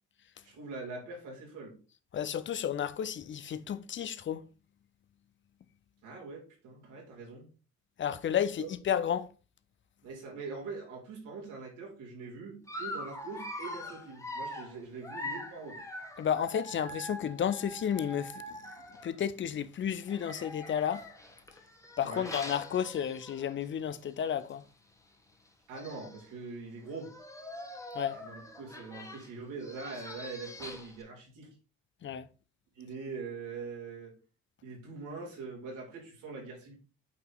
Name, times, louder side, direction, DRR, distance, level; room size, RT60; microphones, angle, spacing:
voice 1, 0.4-1.8 6.0-7.5 8.6-8.7 10.0-15.8 22.0-22.3 25.7-27.1 28.1-31.5 32.7-34.1 34.6-36.7, right 4 dB, 90° right, 2.9 m, -43 dB
voice 2, 2.1-4.4 8.0-9.3 16.2-18.4 19.0-21.0 22.0-24.6 27.9-28.2 32.0-32.3, left 9 dB, 40° left, 0.6 m, -32 dB
Dog, 12.7-19.3 20.0-23.6 24.0-24.2 24.5-24.6 25.5-25.6 25.7-26.3 26.9-31.0, left 1 dB, 10° left, 1.2 m, -44 dB
8.5 x 2.9 x 3.9 m
cardioid pair, 90°, 30 cm